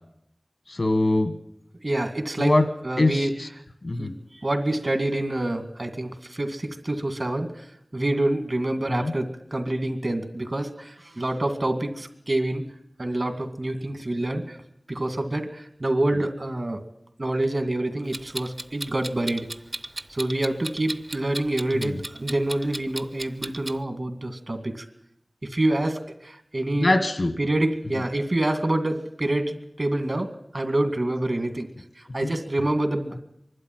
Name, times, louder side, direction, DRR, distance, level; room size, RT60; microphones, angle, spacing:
voice 1, 0.7-1.3 2.4-2.7 3.0-3.5 3.8-4.1 8.9-9.1 21.7-22.0 26.7-27.3 32.2-32.3, left 2 dB, 90° left, 8 dB, 1.6 m, -23 dB
voice 2, 1.8-2.5 2.8-3.3 4.0-12.6 13.0-14.6 14.9-16.8 17.2-19.5 20.1-24.9 25.4-26.9 27.4-31.7 32.1-33.2, right 1 dB, 65° right, 7 dB, 2.2 m, -27 dB
Clock, 18.1-23.8, right 1 dB, 40° right, 0.7 m, -35 dB
24.5 x 12.0 x 9.2 m, 0.78 s
wide cardioid pair, 50°, 0 cm